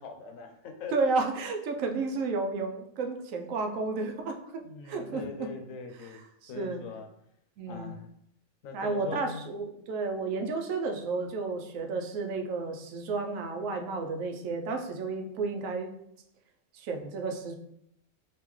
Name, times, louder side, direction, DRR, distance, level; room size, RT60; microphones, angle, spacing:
voice 1, 0.0-1.1 4.6-6.2 6.5-7.1 7.7-8.1 8.6-9.4, left 4 dB, 90° left, 4 dB, 1.0 m, -41 dB
voice 2, 0.9-5.5 6.4-6.8 7.6-7.9 8.7-15.9 16.7-17.5, right 3 dB, 80° right, 4 dB, 1.0 m, -32 dB
3.5 x 2.9 x 3.1 m, 0.73 s
omnidirectional pair, 1.4 m